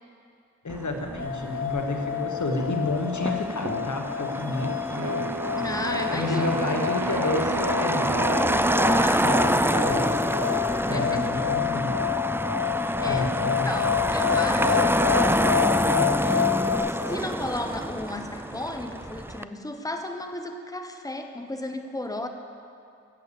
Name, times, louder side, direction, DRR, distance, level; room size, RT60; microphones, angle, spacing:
voice 1, 0.6-5.3 6.1-8.2 9.2-10.4 10.9-12.0 13.1-13.8, left 2 dB, 80° left, 3 dB, 1.3 m, -30 dB
Motor vehicle (road), 0.7-19.4, right 1 dB, 10° right, 0.4 m, -27 dB
sound 1, 1.2-16.8, left 11 dB, 55° left, 1.8 m, -28 dB
Wind instrument woodwind instrument, 4.9-10.0, right 8 dB, 85° right, 0.5 m, -35 dB
voice 2, 5.5-6.5 8.9-9.7 10.9-11.2 13.0-13.4 13.6-22.3, left 1 dB, 10° left, 5 dB, 1.0 m, -34 dB
14.5 x 8.4 x 6.9 m, 2.5 s
wide cardioid pair, 50°, 29 cm